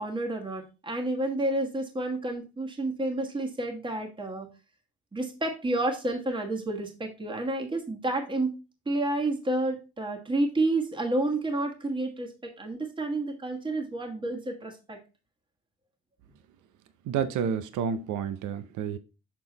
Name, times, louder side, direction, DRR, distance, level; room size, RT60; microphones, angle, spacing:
voice 1, 0.0-4.5 5.1-8.5 8.9-15.0, right 2 dB, 15° right, 1.4 m, -30 dB
voice 2, 17.1-19.0, right 7 dB, 80° right, 0.6 m, -30 dB
6.7 x 3.8 x 3.9 m
cardioid pair, 90°, 30 cm